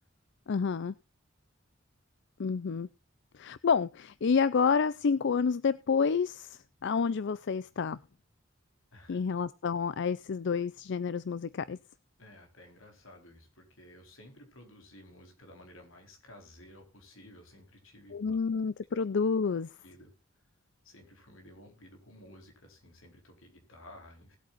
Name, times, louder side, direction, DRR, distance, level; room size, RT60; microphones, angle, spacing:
voice 1, 0.5-0.9 2.4-2.9 3.3-8.0 9.1-11.8 18.1-19.7, left 5 dB, 60° left, 17 dB, 0.5 m, -29 dB
voice 2, 12.2-18.4 19.8-20.1 20.8-24.4, left 1 dB, 90° left, 5 dB, 4.1 m, -54 dB
19.5 x 8.4 x 2.5 m, 0.29 s
head